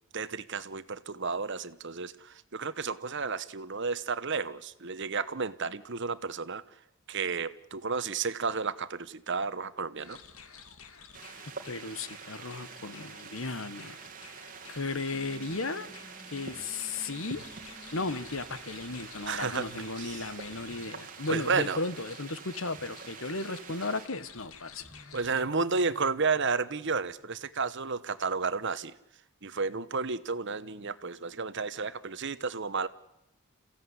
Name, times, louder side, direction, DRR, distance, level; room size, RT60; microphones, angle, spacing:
voice 1, 0.1-6.6 7.1-10.2 19.3-20.2 21.3-21.8 25.1-28.9 29.4-32.9, right 4 dB, 55° right, 1.1 m, -32 dB
sound 1, 10.0-25.4, left 6 dB, 80° left, 2.2 m, -52 dB
sound 2, 11.1-24.1, right 5 dB, 40° right, 2.5 m, -46 dB
voice 2, 11.4-14.0 14.7-15.9 16.3-17.4 17.9-24.9, left 3 dB, 65° left, 1.3 m, -35 dB
sound 3, 14.8-20.4 20.7-21.4 21.7-21.8 22.7-23.5 24.3-27.7 28.4-28.9, left 1 dB, 15° left, 2.1 m, -56 dB
29.0 x 16.0 x 9.7 m
head